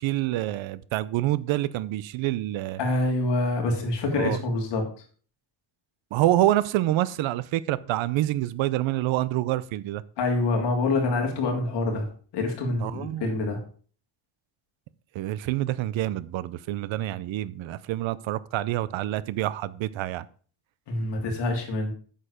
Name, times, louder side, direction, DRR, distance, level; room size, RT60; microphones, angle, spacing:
voice 1, 0.0-2.8 4.1-4.4 6.1-10.0 12.8-13.3 15.1-20.3, right 14 dB, 80° right, 0.7 m, -27 dB
voice 2, 2.8-4.8 10.2-12.1 12.3-13.6 20.9-21.9, left 2 dB, 65° left, 3.0 m, -26 dB
8.9 x 6.8 x 5.1 m
cardioid pair, 165°, 46 cm